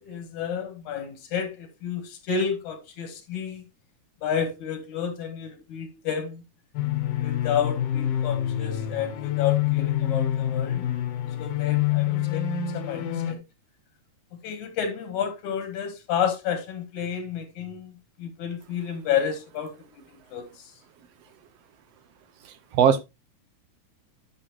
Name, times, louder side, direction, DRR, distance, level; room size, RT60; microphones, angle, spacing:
voice 1, 0.0-3.6 4.2-6.4 7.2-10.8 11.4-13.4 14.4-17.9 18.2-20.7, left 7 dB, 90° left, 3.0 m, -31 dB
sound 1, 6.7-13.3, left 11 dB, 65° left, 1.9 m, -26 dB
voice 2, 22.4-23.0, right 8 dB, 70° right, 1.6 m, -21 dB
10.0 x 7.0 x 3.0 m
omnidirectional pair, 3.3 m